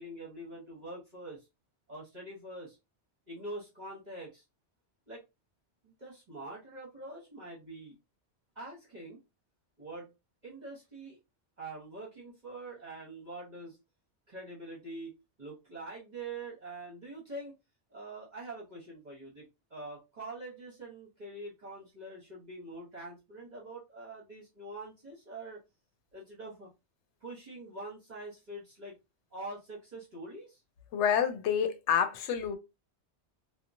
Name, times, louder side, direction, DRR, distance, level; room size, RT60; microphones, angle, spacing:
voice 1, 0.0-1.5 1.9-2.8 3.3-4.4 5.1-5.2 5.8-7.9 8.5-9.2 9.8-10.1 10.4-11.2 11.6-13.8 14.3-15.1 15.4-17.5 17.9-25.6 26.1-26.7 27.2-29.0 29.3-30.6, right 2 dB, 45° right, 0.9 m, -44 dB
voice 2, 30.9-32.6, left 8 dB, 85° left, 0.9 m, -28 dB
2.8 x 2.3 x 2.5 m
omnidirectional pair, 1.1 m